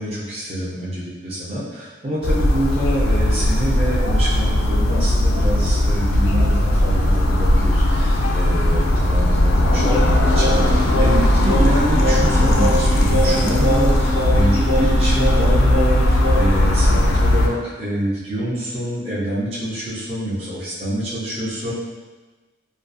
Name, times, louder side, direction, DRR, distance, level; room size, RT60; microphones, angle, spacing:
voice 1, 0.0-21.7, right 1 dB, 30° right, -8 dB, 0.5 m, -26 dB
sound 1, 2.2-17.5, left 1 dB, 90° left, 0.3 m, -17 dB
Singing, 9.8-16.6, equal, 80° right, 1.0 m, -25 dB
2.4 x 2.3 x 2.4 m, 1.2 s
head